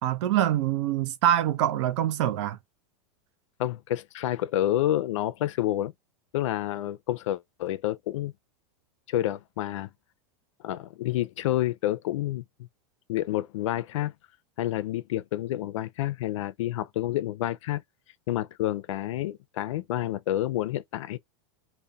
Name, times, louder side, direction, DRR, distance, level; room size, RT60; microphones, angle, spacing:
voice 1, 0.0-2.6, right 11 dB, 70° right, 0.5 m, -25 dB
voice 2, 3.6-5.9 6.3-8.3 9.1-9.9 10.6-12.4 13.1-14.1 14.6-17.8 18.3-21.2, left 13 dB, 90° left, 0.4 m, -29 dB
2.7 x 2.1 x 2.2 m
supercardioid pair, 155°, 16 cm